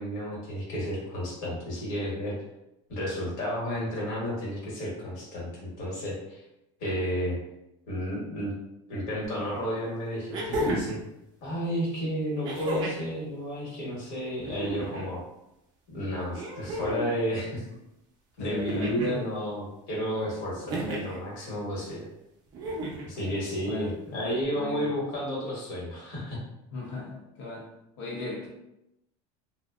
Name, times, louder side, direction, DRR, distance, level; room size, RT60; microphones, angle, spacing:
voice 1, 0.0-2.4 2.9-6.4 6.8-7.4 7.9-8.5 8.9-11.0 11.4-15.2 15.9-17.6 18.4-22.1 23.0-26.4, equal, 50° left, -5 dB, 1.0 m, -32 dB
sound 1, 9.2-9.3 10.3-11.0 12.4-13.1 14.4-15.1 16.3-17.1 18.5-19.2 20.7-21.2 22.5-23.1 24.4-24.5, right 1 dB, 30° right, 0.4 m, -33 dB
voice 2, 18.4-19.2 23.2-23.4 23.6-23.9 24.1-24.8 26.7-27.6 28.0-28.5, left 3 dB, 90° left, -4 dB, 0.8 m, -38 dB
2.5 x 2.1 x 2.3 m, 0.88 s
cardioid pair, 170°, 15 cm